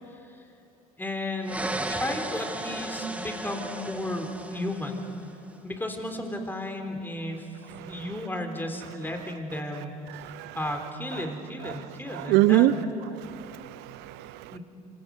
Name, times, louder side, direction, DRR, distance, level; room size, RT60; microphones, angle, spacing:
voice 1, 1.0-5.0 5.6-7.5 7.8-9.9 10.6-12.9 14.5-14.6, left 1 dB, 10° left, 4 dB, 3.9 m, -34 dB
sound 1, 1.4-5.3, right 1 dB, 5° right, 1.7 m, -35 dB
voice 2, 10.1-10.6 11.6-11.8 12.1-12.7 13.2-14.5, right 15 dB, 60° right, 16 dB, 0.9 m, -25 dB
28.0 x 26.5 x 5.5 m, 2.8 s
figure-of-eight pair, 65°, 20 cm